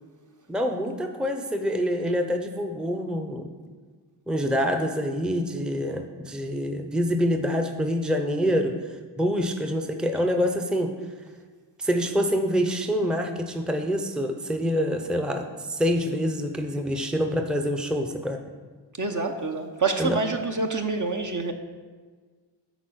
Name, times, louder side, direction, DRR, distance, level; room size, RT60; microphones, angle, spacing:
voice 1, 0.5-3.5 4.3-8.7 9.2-10.9 11.8-18.4 20.0-20.2, equal, ahead, 5 dB, 0.7 m, -26 dB
voice 2, 19.0-21.5, right 3 dB, 40° right, 4 dB, 0.9 m, -27 dB
9.3 x 4.0 x 6.2 m, 1.5 s
cardioid pair, 55°, 45 cm